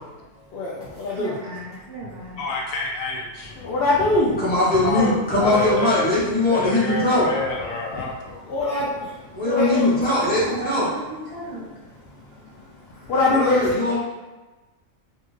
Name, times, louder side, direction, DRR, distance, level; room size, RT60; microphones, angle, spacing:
voice 1, 0.0-1.4 3.5-4.4 5.4-5.5 7.9-8.9 9.1-10.0 12.0-13.7, left 2 dB, 65° left, -7 dB, 0.6 m, -24 dB
voice 2, 1.1-2.5 10.2-11.7, right 1 dB, 55° right, -5 dB, 0.8 m, -35 dB
voice 3, 2.4-3.5 4.8-6.1 6.5-8.1, left 3 dB, 80° left, -2 dB, 1.0 m, -27 dB
voice 4, 4.4-7.3 9.3-10.9 13.3-14.0, left 2 dB, 10° left, -9 dB, 0.7 m, -20 dB
2.7 x 2.3 x 3.1 m, 1.2 s
omnidirectional pair, 1.4 m